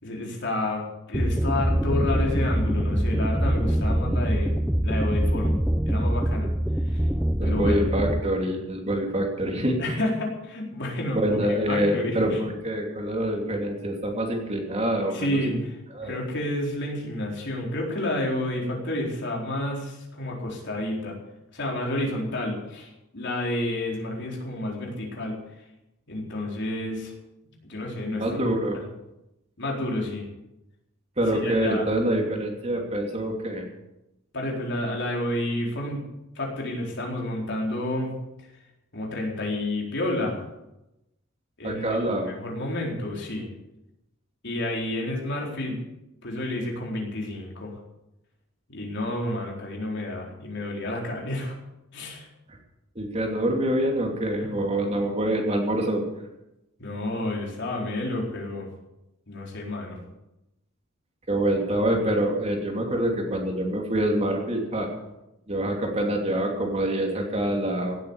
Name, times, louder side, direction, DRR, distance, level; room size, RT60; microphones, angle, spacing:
voice 1, 0.0-4.5 4.8-5.5 5.8-6.5 6.8-7.0 7.4-7.8 9.8-11.4 11.7-12.4 15.1-15.8 16.0-21.1 21.5-25.4 26.1-27.1 27.4-28.4 29.6-30.3 31.3-31.9 34.3-36.0 36.3-38.1 38.9-40.5 41.6-42.0 42.4-43.5 44.4-45.8 46.2-47.8 48.7-51.5 51.9-52.3 54.4-54.6 56.8-58.7 59.3-60.0, left 1 dB, 55° left, -1 dB, 4.1 m, -30 dB
sound 1, 1.1-8.2, equal, 5° right, 0.6 m, -24 dB
voice 2, 7.4-10.0 11.1-15.4 15.9-16.2 28.1-28.8 31.2-33.6 41.6-42.3 52.9-56.0 61.3-64.9 65.5-68.0, right 1 dB, 30° right, 1 dB, 2.8 m, -26 dB
17.0 x 8.4 x 8.1 m, 0.91 s
head